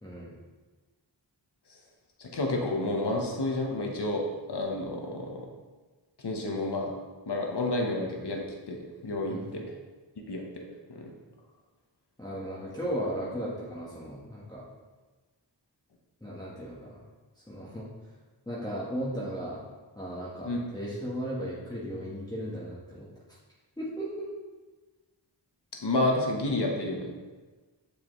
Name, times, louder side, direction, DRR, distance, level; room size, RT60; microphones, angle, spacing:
voice 1, 0.0-0.3 9.3-9.5 12.2-14.6 16.2-17.0 17.5-17.9 18.5-19.6 20.0-23.1 23.8-24.3, equal, 10° left, -8 dB, 1.5 m, -36 dB
voice 2, 2.2-4.2 4.5-5.5 6.2-6.9 7.3-9.6 10.3-11.1 20.4-20.6 25.8-27.1, left 2 dB, 60° left, 0 dB, 1.3 m, -30 dB
6.8 x 5.1 x 3.2 m, 1.3 s
cardioid pair, 50°, 45 cm